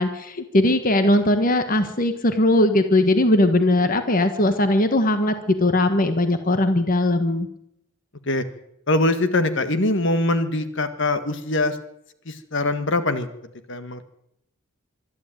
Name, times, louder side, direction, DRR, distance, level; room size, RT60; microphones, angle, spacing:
voice 1, 0.0-7.5, left 1 dB, 40° left, 8 dB, 1.5 m, -19 dB
voice 2, 8.9-11.7 12.3-13.3 13.7-14.0, left 2 dB, 60° left, 10 dB, 1.7 m, -22 dB
24.5 x 12.0 x 9.1 m, 0.81 s
head